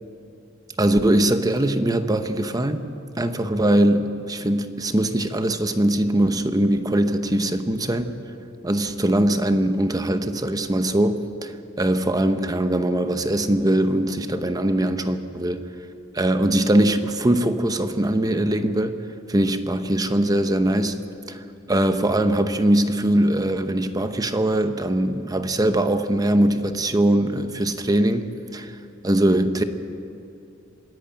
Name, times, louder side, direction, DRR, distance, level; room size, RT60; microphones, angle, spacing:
voice 1, 0.8-2.9 3.2-8.2 8.6-15.6 16.1-19.0 19.3-21.0 21.3-21.4 21.7-28.2 28.5-28.7 29.0-29.6, right 1 dB, 20° right, 9 dB, 0.8 m, -21 dB
26.5 x 11.0 x 8.9 m, 2.6 s
head